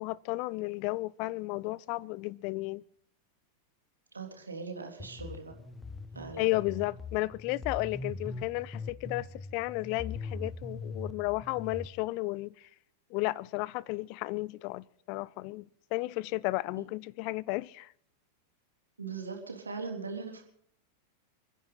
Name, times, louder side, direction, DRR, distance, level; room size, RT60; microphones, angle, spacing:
voice 1, 0.0-2.8 6.4-9.3 9.5-12.7 13.1-17.9, left 21 dB, 45° left, 0.5 m, -33 dB
voice 2, 4.1-5.5 6.1-6.5 19.0-20.4, right 4 dB, 75° right, 3.5 m, -40 dB
sound 1, 5.0-11.9, left 3 dB, 10° left, 1.3 m, -41 dB
30.0 x 11.0 x 4.2 m
figure-of-eight pair, 90°, 0 cm